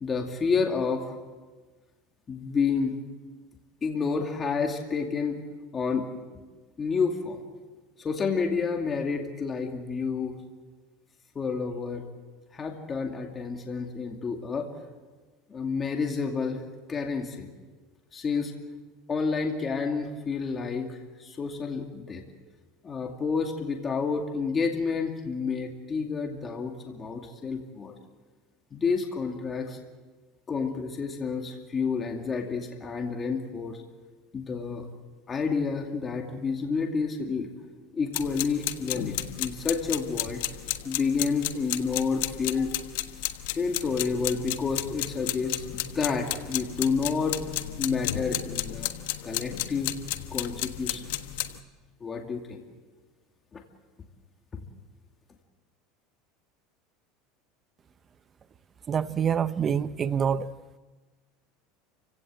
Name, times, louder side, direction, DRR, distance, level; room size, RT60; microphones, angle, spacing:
voice 1, 0.0-1.1 2.3-3.0 3.8-5.4 5.7-6.1 6.8-7.4 8.0-10.4 11.3-12.0 12.5-14.7 15.5-17.5 18.1-18.5 19.1-22.2 22.8-27.9 28.7-29.8 30.5-33.8 34.3-34.9 35.3-37.5 37.9-40.4 40.8-42.7 43.5-47.4 47.8-48.9 49.2-49.9 50.3-51.0 52.0-52.6 53.5-53.6 54.5-54.6, left 5 dB, 25° left, 2.5 m, -29 dB
sound 1, 38.1-51.6, left 14 dB, 80° left, 1.4 m, -33 dB
voice 2, 58.9-60.5, right 7 dB, 30° right, 0.7 m, -26 dB
29.5 x 17.0 x 7.7 m
supercardioid pair, 125°, 0 cm